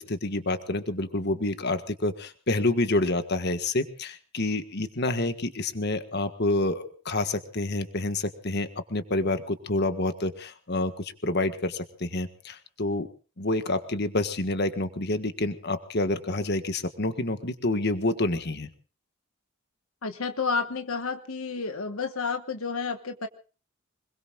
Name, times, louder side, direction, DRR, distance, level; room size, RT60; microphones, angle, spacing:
voice 1, 0.0-13.1 13.4-18.7, left 2 dB, 50° left, 9 dB, 1.6 m, -28 dB
voice 2, 20.0-23.3, left 4 dB, 80° left, 7 dB, 1.3 m, -30 dB
25.5 x 22.0 x 2.5 m, 0.36 s
head